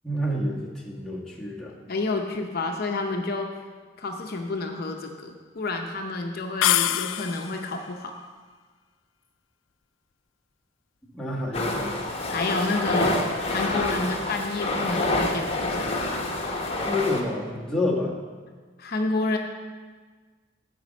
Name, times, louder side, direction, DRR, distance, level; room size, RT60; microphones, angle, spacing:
voice 1, 0.0-1.7 11.1-12.1 16.9-18.1, left 1 dB, 5° left, -4 dB, 1.4 m, -28 dB
voice 2, 1.9-3.5 4.0-8.2 12.3-15.9 18.8-19.4, left 3 dB, 55° left, 3 dB, 0.7 m, -29 dB
sound 1, 6.6-7.7, left 12 dB, 85° left, 0.3 m, -24 dB
sound 2, 11.5-17.2, left 2 dB, 30° left, 1.1 m, -27 dB
9.3 x 5.2 x 7.3 m, 1.5 s
head